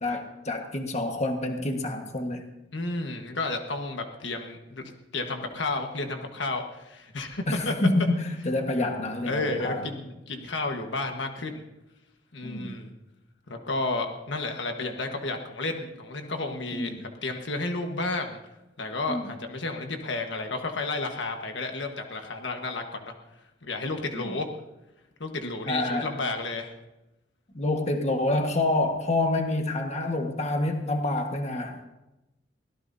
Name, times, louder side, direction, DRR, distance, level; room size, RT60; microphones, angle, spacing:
voice 1, 0.0-2.4 7.5-9.9 12.4-12.8 16.7-17.0 19.1-19.2 24.2-24.4 25.7-26.1 27.5-31.9, left 2 dB, 35° left, 4 dB, 1.5 m, -27 dB
voice 2, 2.7-7.7 9.2-11.6 12.3-12.9 13.5-18.4 18.8-23.1 23.6-24.5 25.2-26.7, left 2 dB, 75° left, 4 dB, 1.4 m, -32 dB
23.5 x 17.0 x 2.7 m, 0.96 s
head